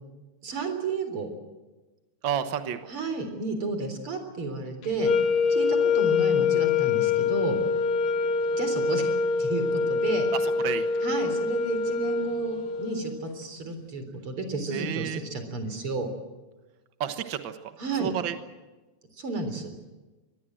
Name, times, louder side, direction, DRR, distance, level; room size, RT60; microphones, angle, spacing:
voice 1, 0.4-1.3 2.9-5.1 5.5-7.6 8.5-10.3 11.0-16.1 17.8-18.1 19.2-19.7, right 3 dB, 40° right, 7 dB, 4.5 m, -32 dB
voice 2, 2.2-2.8 10.3-11.0 14.7-15.2 17.0-17.5 18.0-18.4, right 9 dB, 75° right, 8 dB, 1.1 m, -30 dB
sound 1, 4.9-13.1, left 5 dB, 70° left, 3.3 m, -25 dB
25.0 x 20.0 x 7.7 m, 1.2 s
omnidirectional pair, 4.0 m